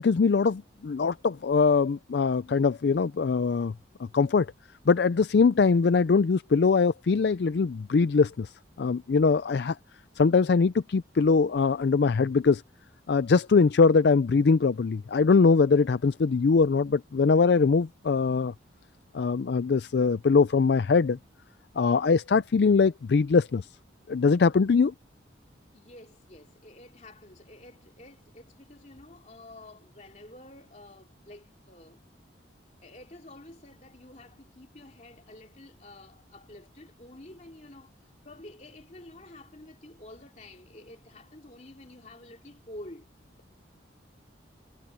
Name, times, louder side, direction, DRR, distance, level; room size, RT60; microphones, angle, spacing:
voice 1, 0.0-3.7 4.1-4.5 4.9-8.5 8.8-9.8 10.2-12.6 13.1-18.5 19.1-21.2 21.8-23.7 24.1-24.9, left 4 dB, 60° left, 0.4 m, -22 dB
voice 2, 25.7-32.0 32.8-37.9 38.2-43.1, left 1 dB, 35° left, 2.9 m, -49 dB
head